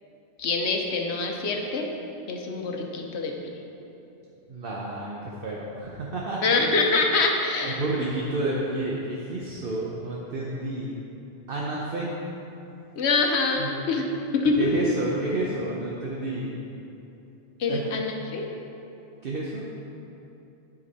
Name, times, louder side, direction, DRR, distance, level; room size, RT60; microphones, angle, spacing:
voice 1, 0.4-1.9 2.3-3.3 6.4-7.8 13.0-14.7 17.6-18.5, left 3 dB, 70° left, 2 dB, 1.0 m, -25 dB
voice 2, 4.5-6.7 7.6-10.9 11.5-12.1 13.6-13.8 14.6-16.5 17.7-17.8 19.2-19.7, right 2 dB, 55° right, -4 dB, 0.9 m, -30 dB
9.6 x 5.2 x 4.1 m, 2.9 s
omnidirectional pair, 1.2 m